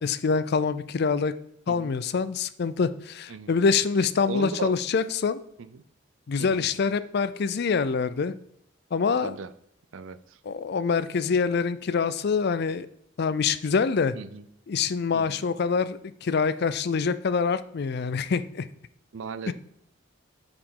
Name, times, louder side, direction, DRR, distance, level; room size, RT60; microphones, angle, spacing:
voice 1, 0.0-1.3 1.7-5.4 6.3-8.3 8.9-9.3 10.5-12.9 13.2-14.2 14.7-18.7 19.5-19.6, left 5 dB, 50° left, 15 dB, 0.4 m, -25 dB
voice 2, 4.3-4.7 5.6-5.8 6.4-6.7 9.2-9.5 9.9-10.4 14.1-14.5 15.1-15.5 19.1-19.5, right 5 dB, 70° right, 14 dB, 0.5 m, -37 dB
8.3 x 4.9 x 3.8 m, 0.74 s
head